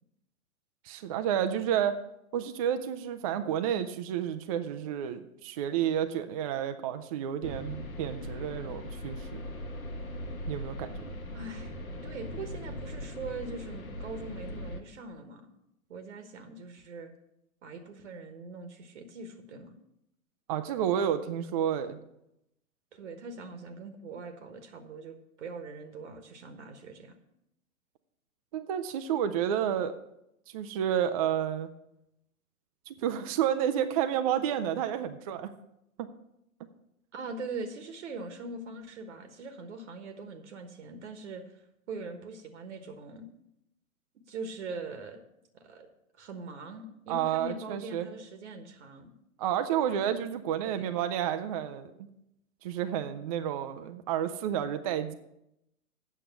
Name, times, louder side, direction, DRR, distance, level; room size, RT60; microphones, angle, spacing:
voice 1, 0.8-2.0 2.3-9.4 10.5-11.0 20.5-22.0 28.5-30.0 30.5-31.7 32.9-35.5 36.0-36.1 47.1-48.1 49.4-52.1 52.6-55.1, right 9 dB, 25° right, 9 dB, 0.4 m, -30 dB
sound 1, 7.4-14.8, left 1 dB, 75° left, 1.3 m, -40 dB
voice 2, 11.3-11.8 12.0-15.5 15.9-17.1 17.6-19.7 22.9-27.1 37.1-43.3 44.1-45.2 45.5-45.9 46.2-49.1 50.6-50.9, right 3 dB, 55° right, 8 dB, 1.2 m, -42 dB
8.4 x 6.5 x 7.7 m, 0.82 s
figure-of-eight pair, 110°, 43 cm